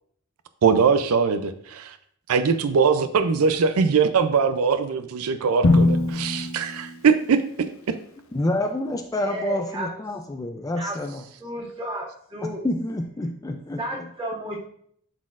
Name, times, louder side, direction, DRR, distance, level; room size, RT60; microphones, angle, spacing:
voice 1, 0.6-2.0 2.3-7.4, right 5 dB, 90° right, 11 dB, 0.4 m, -21 dB
Drum, 5.6-7.7, left 2 dB, 70° left, 0.7 m, -22 dB
voice 2, 8.3-11.2 12.4-14.1, left 1 dB, 15° left, 5 dB, 0.4 m, -28 dB
voice 3, 9.2-9.9 10.8-10.9 11.4-12.6 13.8-14.6, equal, 25° right, -6 dB, 2.1 m, -32 dB
11.5 x 4.1 x 2.4 m, 0.65 s
head